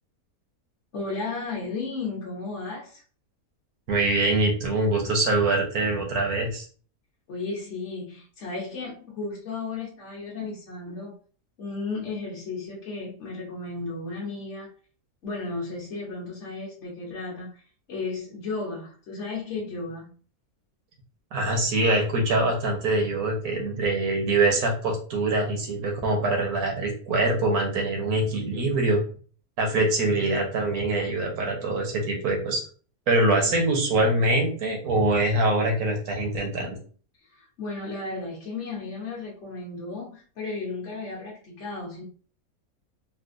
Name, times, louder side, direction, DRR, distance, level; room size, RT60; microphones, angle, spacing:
voice 1, 0.9-3.0 7.3-11.1 11.6-14.7 15.2-17.6 17.9-20.1 33.5-34.1 37.3-42.0, left 3 dB, 55° left, -5 dB, 1.2 m, -34 dB
voice 2, 3.9-6.7 21.3-29.0 29.6-32.6 33.1-36.7, right 2 dB, 75° right, 1 dB, 1.5 m, -24 dB
4.1 x 2.2 x 2.5 m, 0.41 s
omnidirectional pair, 1.6 m